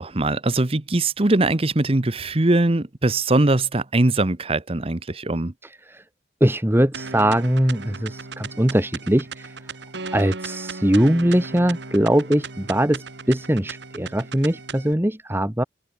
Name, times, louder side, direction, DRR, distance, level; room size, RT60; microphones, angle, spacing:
voice 1, 0.0-5.5, right 2 dB, 30° right, 1.0 m, -21 dB
voice 2, 5.6-6.0 6.4-9.8 10.1-15.6, right 1 dB, 10° right, 1.3 m, -21 dB
sound 1, 6.9-14.9, right 4 dB, 70° right, 1.7 m, -36 dB
head